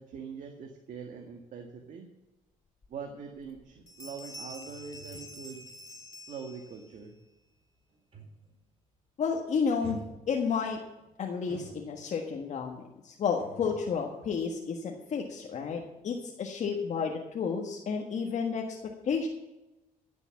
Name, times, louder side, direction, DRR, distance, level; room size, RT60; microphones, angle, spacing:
voice 1, 0.0-2.1 2.9-5.6 6.3-7.2, right 6 dB, 60° right, 3 dB, 1.8 m, -43 dB
sound 1, 2.8-2.9 3.4-3.6 3.9-7.0, left 1 dB, 20° left, 4.0 m, -47 dB
sound 2, 3.7-8.7 9.0-9.3 9.8-12.3 13.4-15.3 15.6-15.7, right 3 dB, 45° right, 4.5 m, -51 dB
voice 2, 9.2-10.0 10.3-10.8 11.2-18.8 19.0-19.3, left 6 dB, 55° left, 0 dB, 1.6 m, -31 dB
15.0 x 7.1 x 7.2 m, 1.0 s
cardioid pair, 110°, 14 cm